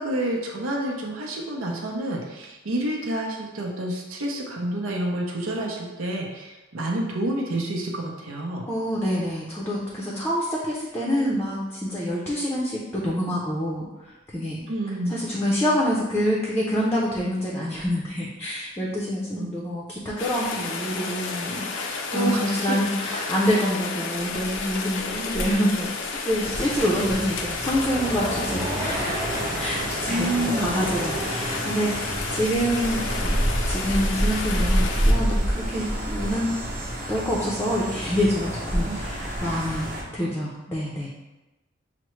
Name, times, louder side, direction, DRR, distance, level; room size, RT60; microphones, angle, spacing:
voice 1, 0.0-8.6 14.7-15.2 19.3-19.5 22.1-22.8 30.1-30.8 38.8-39.0 40.1-40.2, right 1 dB, 85° right, -1 dB, 0.6 m, -29 dB
voice 2, 8.7-13.9 14.3-14.6 15.1-25.9 26.2-29.2 29.6-30.3 30.6-33.3 33.7-36.5 37.1-41.1, equal, 10° left, -5 dB, 0.5 m, -26 dB
Rain, 20.2-35.1, left 4 dB, 65° left, 0.4 m, -32 dB
sound 1, 26.4-40.0, right 1 dB, 45° right, 0.8 m, -28 dB
sound 2, 27.9-32.4, right 1 dB, 20° right, 1.1 m, -33 dB
5.8 x 2.1 x 3.1 m, 1.1 s
head